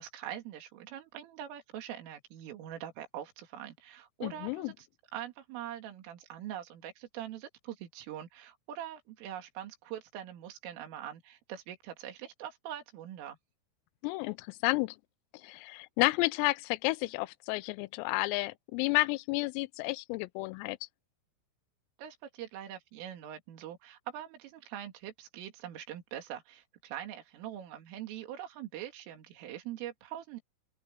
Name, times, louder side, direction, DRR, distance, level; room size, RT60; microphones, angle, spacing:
voice 1, 0.0-4.9 5.1-13.4 22.0-30.4, right 11 dB, 75° right, 5.2 m, -43 dB
voice 2, 4.2-4.7 14.0-15.0 15.4-20.8, left 22 dB, 85° left, 3.3 m, -31 dB
open air
omnidirectional pair, 5.9 m